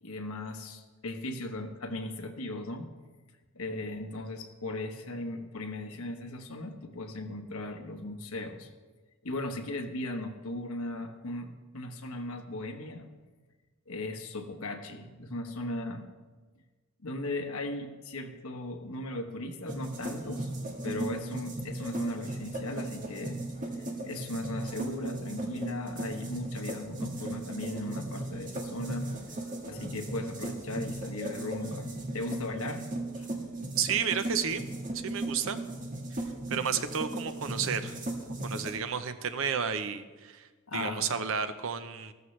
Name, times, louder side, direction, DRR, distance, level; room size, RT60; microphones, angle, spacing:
voice 1, 0.0-2.9 3.5-8.7 9.2-13.1 13.9-16.1 17.0-20.5 20.8-23.4 23.8-29.1 29.6-32.9 33.1-33.3 40.7-41.1, left 2 dB, 75° left, 5 dB, 1.2 m, -37 dB
sound 1, 19.7-38.8, right 1 dB, 35° right, 1.6 m, -37 dB
voice 2, 33.8-34.6 34.9-35.6 36.1-36.2 36.5-38.0 38.4-42.1, right 6 dB, 65° right, 10 dB, 0.7 m, -32 dB
14.5 x 13.5 x 3.3 m, 1.3 s
head